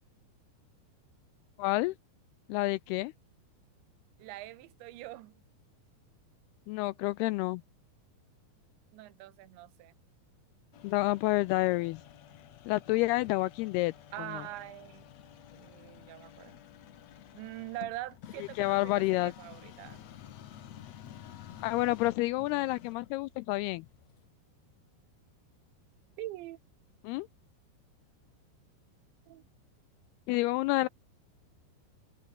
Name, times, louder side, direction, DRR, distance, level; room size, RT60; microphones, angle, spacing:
voice 1, 1.6-2.0 2.5-3.1 6.7-7.6 10.8-12.0 12.7-14.5 18.6-19.3 21.6-23.9 27.0-27.3 30.3-30.9, left 20 dB, 85° left, 2.3 m, -29 dB
voice 2, 4.2-5.4 8.9-9.9 14.1-15.1 15.5-16.5 17.3-20.1 26.2-26.6 29.3-29.5, right 16 dB, 85° right, 3.4 m, -43 dB
sound 1, 10.7-24.3, left 11 dB, 70° left, 1.6 m, -51 dB
open air
omnidirectional pair, 5.1 m